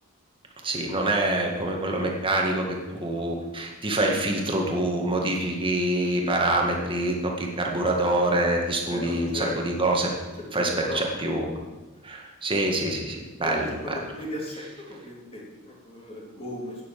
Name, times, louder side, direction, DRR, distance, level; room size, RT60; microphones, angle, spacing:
voice 1, 0.6-10.1 10.5-11.5 12.0-14.0, right 1 dB, 25° right, 0 dB, 1.8 m, -26 dB
voice 2, 8.9-9.6 10.5-11.2 13.4-16.8, left 1 dB, 30° left, -2 dB, 2.9 m, -36 dB
9.1 x 7.8 x 7.4 m, 1.2 s
head